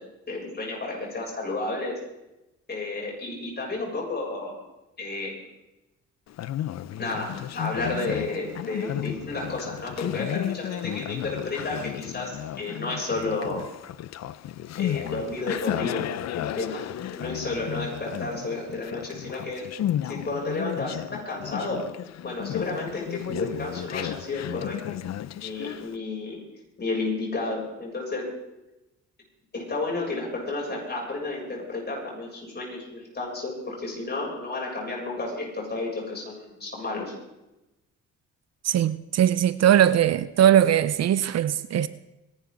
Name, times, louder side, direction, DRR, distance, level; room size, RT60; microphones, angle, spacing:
voice 1, 0.3-2.0 2.7-4.6 5.0-5.3 7.0-13.7 14.8-16.1 16.3-16.8 17.1-19.6 20.0-21.8 22.2-24.8 25.4-26.4 26.8-28.3 29.5-37.1, left 2 dB, 35° left, 7.5 m, -32 dB
Conversation, 6.3-26.0, left 11 dB, 60° left, 0.7 m, -33 dB
voice 2, 38.6-41.9, right 10 dB, 55° right, 0.7 m, -20 dB
25.0 x 12.0 x 4.0 m
cardioid pair, 90°, 30 cm